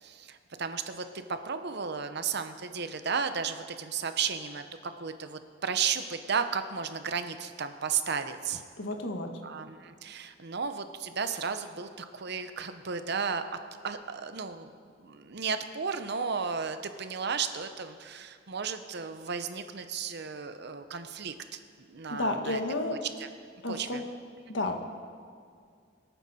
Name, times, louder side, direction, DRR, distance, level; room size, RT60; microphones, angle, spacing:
voice 1, 0.0-8.6 9.4-13.4 13.8-14.7 15.0-22.6 22.9-23.3 23.7-24.0, right 6 dB, 60° right, 9 dB, 0.8 m, -34 dB
voice 2, 8.8-9.3 22.1-23.0 23.6-24.0 24.5-24.8, left 2 dB, 70° left, 4 dB, 1.5 m, -31 dB
24.5 x 9.2 x 4.3 m, 2.2 s
head